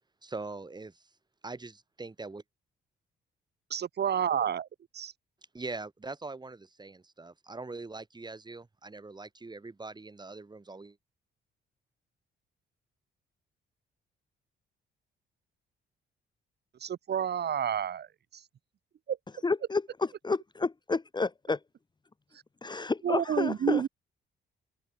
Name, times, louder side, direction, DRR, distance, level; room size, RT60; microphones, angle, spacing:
voice 1, 0.2-1.1 1.4-2.4 5.5-11.0, right 3 dB, 20° right, 5.0 m, -42 dB
voice 2, 3.7-4.7 4.9-5.1 16.8-18.4 19.1-19.2 22.3-22.4 23.0-23.9, right 9 dB, 55° right, 2.2 m, -30 dB
voice 3, 19.4-19.8 20.2-21.6 22.6-23.8, left 3 dB, 20° left, 1.4 m, -30 dB
cardioid pair, 90°, 20 cm